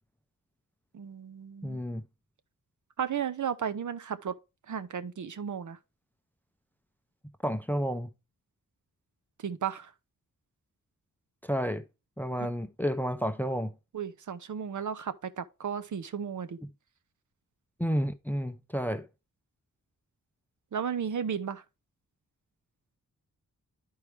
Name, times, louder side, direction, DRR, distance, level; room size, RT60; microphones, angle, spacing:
voice 1, 0.9-1.8 3.0-4.3 4.7-5.8 9.4-9.9 13.9-16.6 20.7-21.6, right 7 dB, 60° right, 0.7 m, -34 dB
voice 2, 1.6-2.0 7.4-8.1 11.4-11.8 12.2-13.7 17.8-19.1, equal, 5° left, 0.5 m, -31 dB
12.0 x 4.7 x 3.2 m
wide cardioid pair, 165°, 33 cm